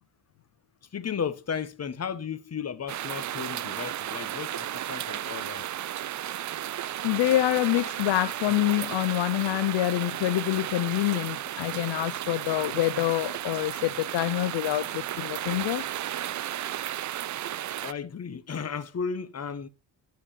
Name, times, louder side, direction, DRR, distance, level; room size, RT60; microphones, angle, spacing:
voice 1, 0.9-5.7 17.8-19.7, left 6 dB, 35° left, 1.1 m, -34 dB
sound 1, 2.9-17.9, right 12 dB, 45° right, 0.4 m, -34 dB
voice 2, 7.0-15.8, left 15 dB, 70° left, 0.6 m, -26 dB
11.0 x 4.6 x 5.3 m
cardioid pair, 105°, 45 cm